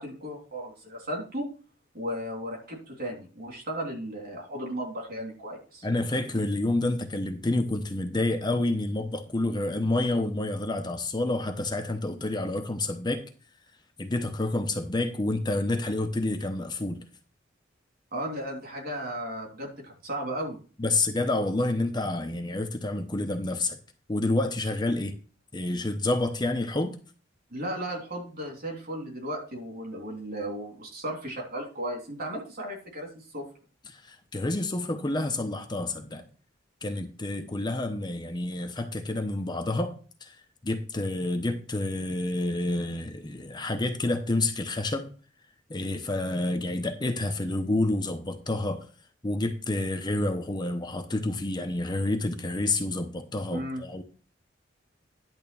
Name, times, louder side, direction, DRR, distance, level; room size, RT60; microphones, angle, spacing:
voice 1, 0.0-1.4 1.9-5.9 18.1-20.6 27.5-33.5 53.5-53.8, right 1 dB, 50° right, 3.3 m, -35 dB
voice 2, 5.8-13.3 14.0-17.0 20.8-23.8 24.1-25.1 25.5-27.0 33.9-36.3 36.8-39.9 40.2-40.4 40.6-45.1 45.7-48.9 49.2-54.0, left 2 dB, 25° left, 0.8 m, -29 dB
10.5 x 3.6 x 6.9 m
head